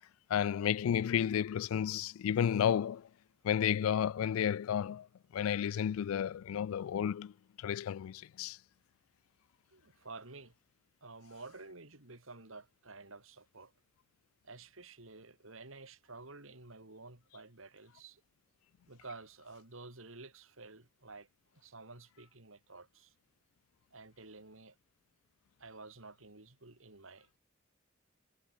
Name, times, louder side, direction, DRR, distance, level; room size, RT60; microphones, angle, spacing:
voice 1, 0.3-3.1 3.4-5.1 5.3-7.3 7.6-8.6, left 9 dB, 85° left, 0.3 m, -32 dB
voice 2, 9.7-10.5 11.0-13.7 14.4-18.2 18.9-21.3 21.5-23.1 23.9-24.8 25.6-27.3, right 3 dB, 75° right, 3.3 m, -51 dB
head